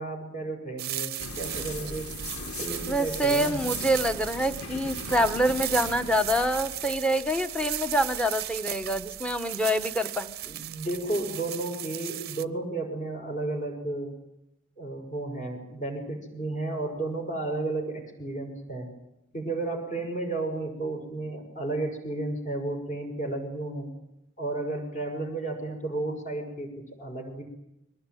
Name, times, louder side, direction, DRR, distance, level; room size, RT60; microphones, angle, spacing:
voice 1, 0.0-2.1 2.4-3.6 10.4-14.1 14.8-18.9 19.3-23.9 24.4-27.4, right 2 dB, 35° left, 2 dB, 6.1 m, -33 dB
sound 1, 0.8-12.4, right 14 dB, 50° right, 0.8 m, -36 dB
sound 2, 1.2-11.3, left 2 dB, 85° left, 3.7 m, -41 dB
voice 2, 2.9-10.3, equal, 5° left, 9 dB, 1.3 m, -26 dB
23.0 x 18.5 x 9.3 m, 0.85 s
head